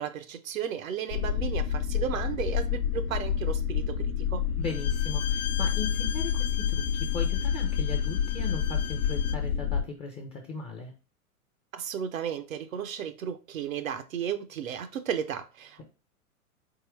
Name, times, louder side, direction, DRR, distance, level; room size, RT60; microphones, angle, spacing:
voice 1, 0.0-4.5 11.7-15.8, right 8 dB, 65° right, 0.7 m, -34 dB
sound 1, 1.1-9.8, left 8 dB, 45° left, 0.8 m, -28 dB
Bowed string instrument, 4.6-9.5, left 10 dB, 75° left, 0.5 m, -39 dB
voice 2, 4.6-10.9, left 4 dB, 15° left, 0.5 m, -38 dB
4.2 x 3.7 x 3.1 m
figure-of-eight pair, 105°, 45 cm